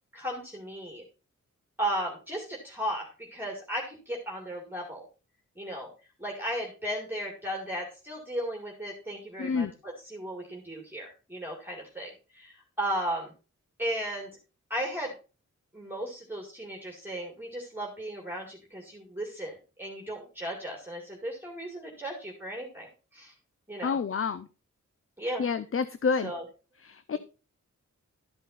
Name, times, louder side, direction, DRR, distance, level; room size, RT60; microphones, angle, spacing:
voice 1, 0.1-1.0 1.8-5.0 5.6-5.9 6.2-13.3 13.8-14.3 14.7-15.1 15.7-23.3 23.7-24.0 25.2-25.4 26.2-26.4 27.1-27.2, right 1 dB, 5° right, 0 dB, 2.2 m, -35 dB
voice 2, 9.4-9.7 23.8-24.5 25.4-26.3 26.8-27.2, left 5 dB, 45° left, 13 dB, 0.6 m, -28 dB
12.5 x 5.6 x 4.1 m, 0.34 s
wide cardioid pair, 85°, 30 cm